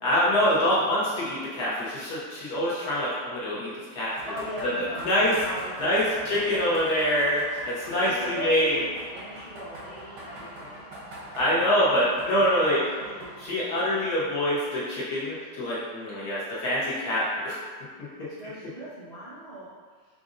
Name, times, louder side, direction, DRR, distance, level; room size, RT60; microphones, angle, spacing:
voice 1, 0.0-4.2 4.6-4.7 5.0-5.3 5.8-8.8 11.4-12.8 13.4-17.6 18.2-18.3, equal, 60° left, -8 dB, 1.1 m, -25 dB
sound 1, 4.1-13.5, equal, 85° right, 1.8 m, -43 dB
voice 2, 4.3-6.7 8.0-10.9 11.6-13.7 18.3-19.7, equal, 30° left, -13 dB, 0.8 m, -39 dB
5.1 x 2.5 x 2.5 m, 1.5 s
omnidirectional pair, 2.4 m